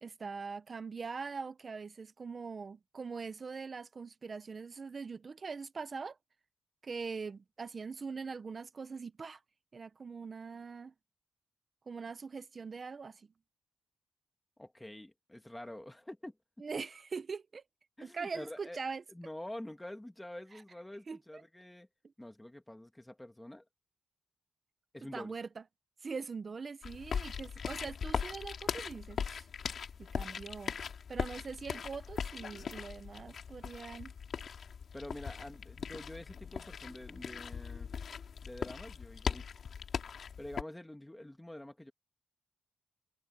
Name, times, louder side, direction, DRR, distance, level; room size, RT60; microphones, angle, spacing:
voice 1, 0.0-6.2 6.8-9.4 9.7-10.9 11.9-13.3 16.6-17.6 18.0-19.0 21.1-21.4 25.1-25.6 26.0-29.5 30.0-30.8 31.1-34.1, right 5 dB, 35° right, 0.9 m, -42 dB
voice 2, 14.6-16.3 18.0-18.8 19.1-21.9 22.2-23.6 24.9-25.3 34.9-37.9 38.4-39.5 40.4-41.9, left 1 dB, 10° left, 2.1 m, -47 dB
sound 1, 26.8-40.6, left 6 dB, 55° left, 3.1 m, -40 dB
cardioid pair, 115°, 0 cm